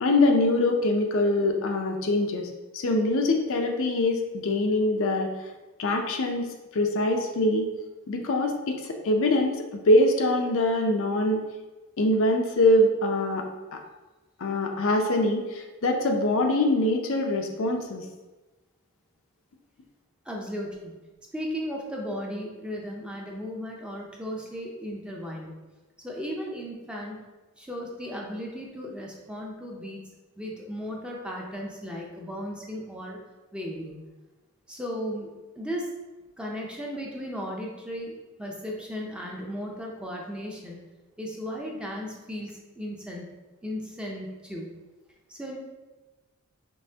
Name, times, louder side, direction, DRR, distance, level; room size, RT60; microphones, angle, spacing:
voice 1, 0.0-5.3 5.8-6.5 6.7-7.7 8.1-11.4 12.0-13.8 14.4-18.0, left 1 dB, 60° left, 3 dB, 0.5 m, -24 dB
voice 2, 20.2-21.0 21.3-25.5 26.0-27.2 27.6-30.0 30.4-33.2 33.5-34.0 34.7-35.9 36.4-40.9 41.2-43.3 43.6-44.8 45.3-45.6, equal, 5° right, -2 dB, 0.6 m, -36 dB
5.3 x 3.2 x 2.7 m, 1.2 s
head